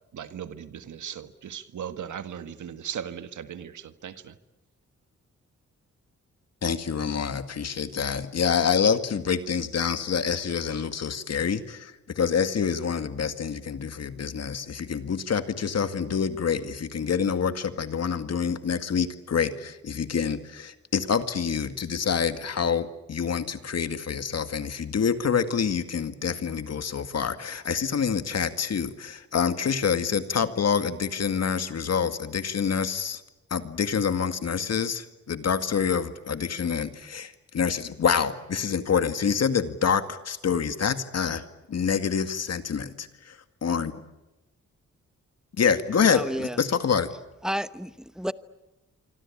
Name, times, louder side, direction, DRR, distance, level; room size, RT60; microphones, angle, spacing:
voice 1, 0.1-4.4, right 8 dB, 85° right, 10 dB, 1.8 m, -38 dB
voice 2, 6.6-33.2 33.5-41.4 41.7-44.0 45.6-47.1, left 6 dB, 60° left, 10 dB, 2.1 m, -27 dB
voice 3, 46.0-46.6 47.4-48.3, equal, ahead, 13 dB, 1.1 m, -31 dB
26.0 x 25.5 x 8.7 m, 1.0 s
cardioid pair, 100°, 29 cm